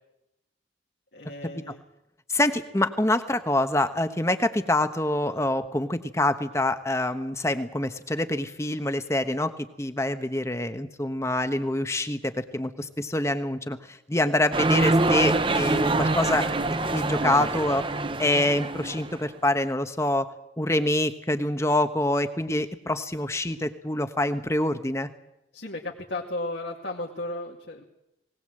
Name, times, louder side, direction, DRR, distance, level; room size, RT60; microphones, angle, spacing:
voice 1, 1.1-1.8 25.5-27.8, left 2 dB, 65° left, -2 dB, 2.4 m, -34 dB
voice 2, 2.3-9.5 9.8-16.6 16.9-17.8 18.2-20.3 20.6-25.1, left 1 dB, 15° left, 9 dB, 1.1 m, -26 dB
sound 1, 14.5-19.2, right 2 dB, 25° right, 0.8 m, -25 dB
19.5 x 19.5 x 7.7 m, 0.88 s
head